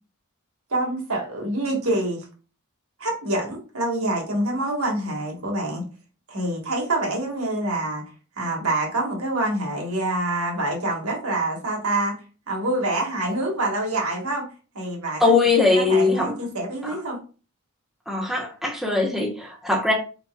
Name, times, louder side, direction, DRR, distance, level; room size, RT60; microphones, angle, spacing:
voice 1, 0.7-2.3 3.0-5.9 6.3-8.0 8.4-12.2 12.5-14.5 14.7-15.2 15.7-17.2, right 2 dB, 75° right, 1.5 m, -26 dB
voice 2, 15.2-16.3 16.8-17.0 18.1-19.9, left 3 dB, ahead, 0.9 m, -21 dB
4.1 x 4.0 x 2.4 m
head